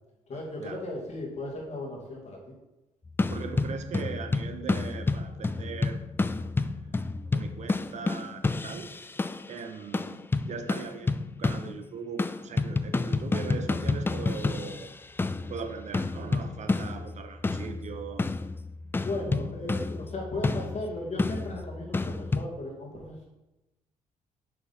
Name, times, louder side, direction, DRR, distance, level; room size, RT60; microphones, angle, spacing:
voice 1, 0.3-2.5 18.8-23.3, left 2 dB, 55° left, -2 dB, 2.3 m, -36 dB
sound 1, 3.1-9.6 9.9-11.9 12.2-22.5, left 3 dB, 15° left, 0.3 m, -30 dB
voice 2, 3.3-6.0 6.6-6.9 7.2-8.9 9.5-14.9 15.5-18.3, right 5 dB, 60° right, 7 dB, 0.8 m, -39 dB
6.1 x 5.8 x 4.2 m, 0.99 s
cardioid pair, 85°, 14 cm